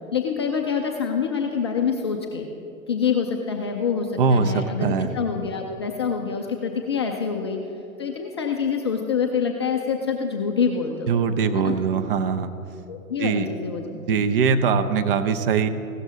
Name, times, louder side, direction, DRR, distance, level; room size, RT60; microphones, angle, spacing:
voice 1, 0.1-2.5 2.9-7.6 8.0-11.1 11.5-11.8 12.9-13.9 14.2-14.3, left 6 dB, 20° left, 2 dB, 0.4 m, -26 dB
voice 2, 4.2-5.1 11.1-12.5 13.2-13.5 13.9-15.7, right 5 dB, 40° right, 9 dB, 0.7 m, -22 dB
15.5 x 12.0 x 3.8 m, 2.8 s
figure-of-eight pair, 110°, 42 cm